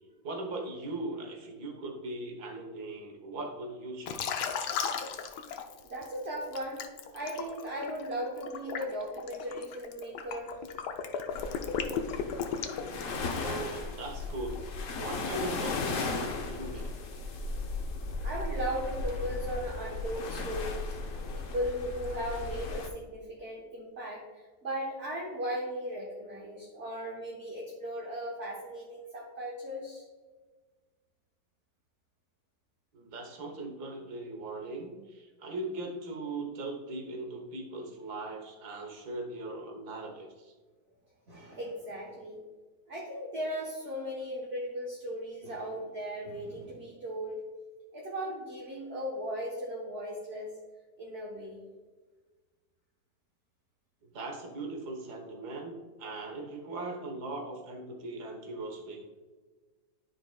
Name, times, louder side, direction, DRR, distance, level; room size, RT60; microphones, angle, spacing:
voice 1, 0.2-4.4 13.3-14.6 14.9-17.1 32.9-40.5 54.0-59.0, right 2 dB, 65° right, 1 dB, 1.7 m, -39 dB
Liquid, 4.1-6.1 6.5-13.5, left 7 dB, 75° left, 1.2 m, -35 dB
voice 2, 5.9-6.8 7.1-10.6 18.2-21.0 21.3-30.0 41.3-42.4 42.9-47.4 47.9-50.6 51.0-51.6, equal, 40° right, -3 dB, 1.2 m, -37 dB
sound 1, 11.3-22.9, left 3 dB, 55° left, 1.1 m, -36 dB
11.0 x 4.9 x 2.2 m, 1.3 s
omnidirectional pair, 1.9 m